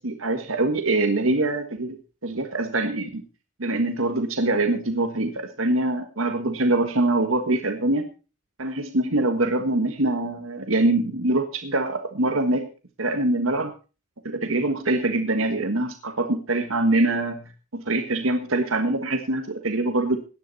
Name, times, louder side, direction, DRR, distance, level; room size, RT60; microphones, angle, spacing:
voice 1, 0.0-3.2 3.6-8.1 8.6-12.7 13.0-13.7 14.2-17.4 17.7-20.2, right 2 dB, 90° right, 6 dB, 1.6 m, -24 dB
17.5 x 10.0 x 4.2 m, 0.34 s
head